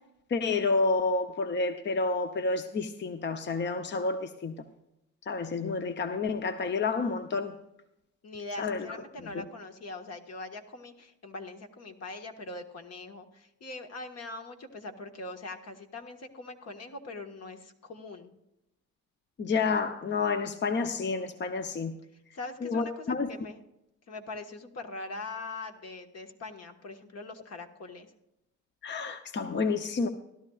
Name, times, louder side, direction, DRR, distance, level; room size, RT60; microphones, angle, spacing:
voice 1, 0.3-4.5 5.3-7.5 8.6-8.9 9.3-9.4 19.4-21.9 22.6-23.3 28.8-30.1, left 4 dB, 35° left, 9 dB, 0.7 m, -29 dB
voice 2, 8.2-18.3 22.3-23.6 24.1-28.1, left 2 dB, 55° left, 5 dB, 1.6 m, -42 dB
16.5 x 12.0 x 2.4 m, 0.89 s
cardioid pair, 90°, 31 cm